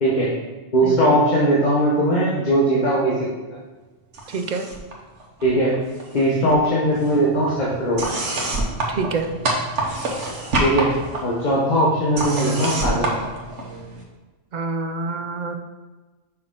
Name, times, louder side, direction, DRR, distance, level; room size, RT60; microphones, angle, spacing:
voice 1, 0.7-3.3 5.4-5.7 6.1-8.2 10.6-10.9 11.2-13.1, right 1 dB, 40° left, -5 dB, 1.1 m, -19 dB
sound 1, 4.1-4.9 5.2-6.2 6.5-14.0, right 2 dB, 85° right, 1.4 m, -27 dB
voice 2, 4.3-4.7 8.9-9.3 14.5-15.5, right 4 dB, 55° right, 7 dB, 0.5 m, -26 dB
5.8 x 5.7 x 3.8 m, 1.3 s
omnidirectional pair, 1.2 m